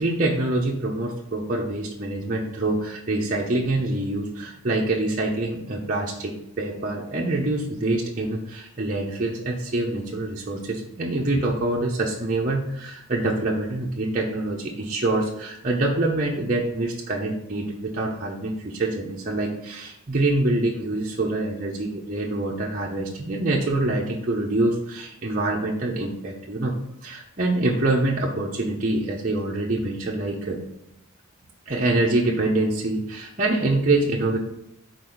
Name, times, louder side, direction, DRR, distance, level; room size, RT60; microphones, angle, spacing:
voice 1, 0.0-26.7 27.0-30.6 31.7-34.4, right 2 dB, 40° right, -3 dB, 0.8 m, -25 dB
5.3 x 4.3 x 6.1 m, 0.82 s
head